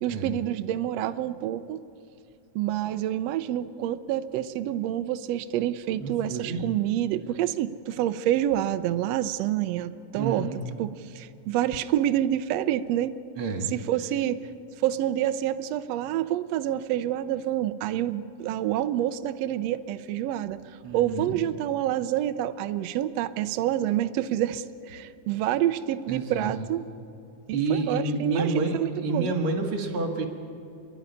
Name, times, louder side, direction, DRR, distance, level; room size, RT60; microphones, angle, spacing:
voice 1, 0.0-1.8 2.5-13.1 13.6-14.5 14.8-26.8 27.5-29.4, right 12 dB, 85° right, 11 dB, 1.4 m, -28 dB
voice 2, 6.0-6.6 10.2-10.6 13.4-13.7 20.8-21.4 26.1-26.5 27.5-28.7 29.0-30.3, right 3 dB, 45° right, 4 dB, 2.3 m, -29 dB
28.5 x 11.5 x 9.9 m, 2.6 s
omnidirectional pair, 3.7 m